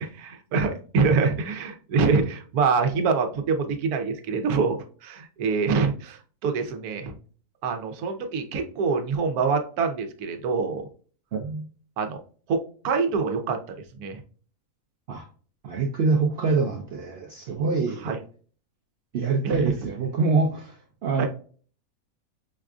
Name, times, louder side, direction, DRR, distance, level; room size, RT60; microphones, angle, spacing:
voice 1, 0.0-7.1 7.6-10.9 12.0-12.2 12.5-12.6 12.8-13.6 13.9-14.2 18.0-18.2 19.4-19.6 21.2-21.3, right 5 dB, 90° right, 6 dB, 1.2 m, -25 dB
voice 2, 11.3-11.6 15.1-15.3 15.6-18.2 19.1-21.3, right 4 dB, 65° right, 2 dB, 0.6 m, -25 dB
5.2 x 2.4 x 2.3 m, 0.42 s
omnidirectional pair, 1.5 m